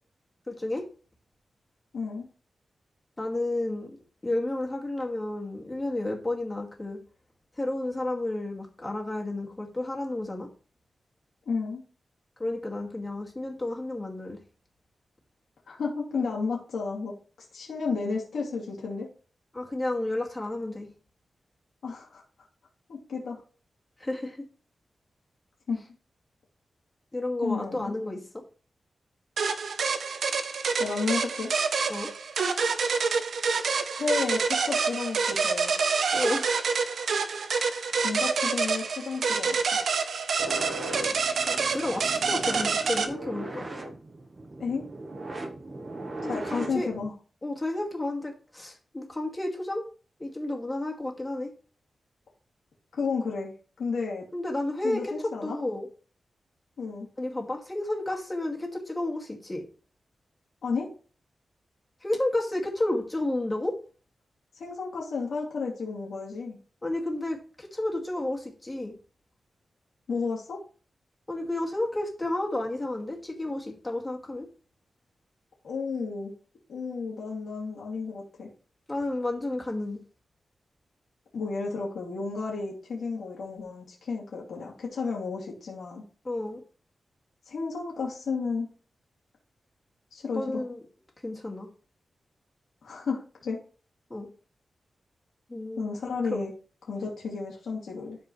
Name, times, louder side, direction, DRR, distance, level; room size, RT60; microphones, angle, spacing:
voice 1, 0.5-0.8 3.2-4.0 4.2-7.0 7.6-10.5 12.4-14.4 19.5-20.9 24.0-24.4 27.1-28.2 31.9-32.1 36.1-36.9 41.5-43.7 46.4-46.9 47.4-49.8 50.2-51.5 54.3-55.1 55.4-55.9 57.2-59.6 62.0-63.7 66.8-69.0 71.3-74.5 78.9-80.0 86.2-86.6 90.3-90.8 91.2-91.7 94.1-94.3 95.5-95.9 96.3-96.4, left 1 dB, 20° left, 0 dB, 2.2 m, -31 dB
voice 2, 1.9-2.3 11.5-11.8 15.7-17.1 17.5-19.1 21.8-22.2 22.9-23.4 25.7-25.8 27.4-27.9 30.8-31.5 34.0-35.7 38.0-39.6 44.6-44.8 46.3-47.1 52.9-53.5 53.8-54.2 54.8-55.6 56.8-57.1 60.6-60.9 64.6-66.6 70.1-70.6 75.6-76.3 76.7-78.5 81.3-86.0 87.5-88.7 90.1-90.6 92.8-93.6 95.8-96.5 96.9-98.2, left 4 dB, 90° left, -3 dB, 2.7 m, -32 dB
sound 1, 29.4-43.1, right 5 dB, 80° right, 0.8 m, -27 dB
sound 2, 40.4-47.1, right 2 dB, 40° right, 1.0 m, -38 dB
12.5 x 4.8 x 3.2 m, 0.39 s
wide cardioid pair, 90°, 0 cm